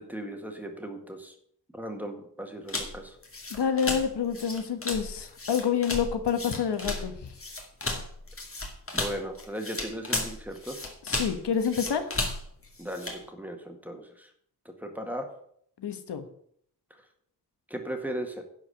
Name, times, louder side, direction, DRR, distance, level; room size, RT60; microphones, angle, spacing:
voice 1, 0.0-1.3 1.7-3.2 8.9-10.8 12.8-14.3 14.8-15.3 17.7-18.4, right 1 dB, 5° right, 4 dB, 1.9 m, -37 dB
sound 1, 2.7-13.2, left 2 dB, 35° left, 2.1 m, -34 dB
voice 2, 3.5-7.3 11.0-12.2 15.8-16.2, left 7 dB, 85° left, 8 dB, 1.3 m, -28 dB
11.0 x 4.8 x 8.1 m, 0.66 s
wide cardioid pair, 95°, 40 cm